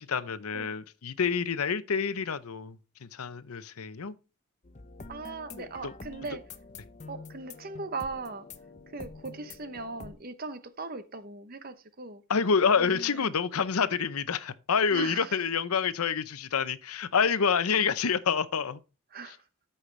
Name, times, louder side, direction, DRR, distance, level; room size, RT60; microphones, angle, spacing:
voice 1, 0.0-4.1 5.6-5.9 12.3-18.8, left 6 dB, 90° left, 0.7 m, -28 dB
sound 1, 4.6-10.1, left 3 dB, 35° left, 0.7 m, -47 dB
voice 2, 5.1-6.4 7.1-8.5 8.9-12.2 12.8-13.3 13.8-13.9 14.9-15.4 19.1-19.4, right 3 dB, 40° right, 0.9 m, -39 dB
13.5 x 5.7 x 3.3 m
head